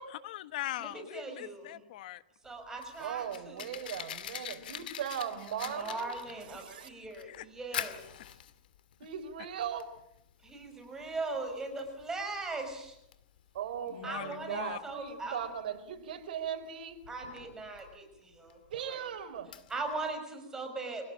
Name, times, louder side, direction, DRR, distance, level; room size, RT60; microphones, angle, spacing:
voice 1, 0.1-2.2 6.5-6.9 7.3-7.4 7.7-7.8 13.9-14.8, left 14 dB, 65° left, 13 dB, 1.4 m, -41 dB
voice 2, 0.8-1.7 2.4-3.8 5.6-8.0 10.4-13.0 14.0-15.4 17.1-18.6 18.8-19.1 19.7-21.1, right 3 dB, 10° right, 5 dB, 5.8 m, -39 dB
Fire, 2.5-20.1, left 10 dB, 80° left, 2.3 m, -46 dB
voice 3, 3.0-6.1 6.5-6.9 9.0-10.0 13.5-17.0 18.7-19.5, right 9 dB, 75° right, 6 dB, 4.4 m, -38 dB
26.5 x 18.0 x 8.9 m, 0.79 s
supercardioid pair, 145°, 5 cm